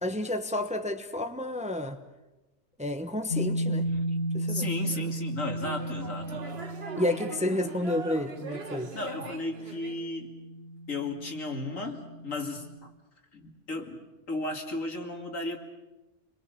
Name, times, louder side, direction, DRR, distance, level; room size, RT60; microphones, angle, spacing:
voice 1, 0.0-2.0 2.8-3.9 4.3-4.6 7.0-8.9, left 1 dB, 5° right, 7 dB, 1.1 m, -30 dB
sound 1, 3.3-12.8, right 1 dB, 50° left, 2.6 m, -35 dB
voice 2, 4.5-6.4 8.9-10.3 10.9-12.9 13.3-15.6, left 2 dB, 75° left, 3 dB, 3.0 m, -35 dB
sound 2, 4.7-10.0, right 3 dB, 50° right, 1.8 m, -41 dB
28.5 x 22.5 x 6.9 m, 1.0 s
omnidirectional pair, 1.4 m